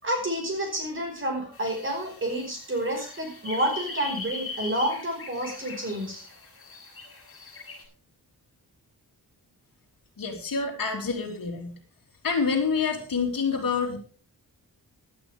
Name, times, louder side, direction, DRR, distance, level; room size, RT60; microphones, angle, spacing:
voice 1, 0.0-6.2, right 1 dB, 30° right, 3 dB, 5.1 m, -29 dB
sound 1, 1.5-7.8, left 3 dB, 35° left, 6.8 m, -40 dB
voice 2, 10.2-11.7 12.2-14.0, left 5 dB, 60° left, 3 dB, 3.0 m, -27 dB
17.5 x 11.5 x 3.5 m, 0.39 s
wide cardioid pair, 160°, 38 cm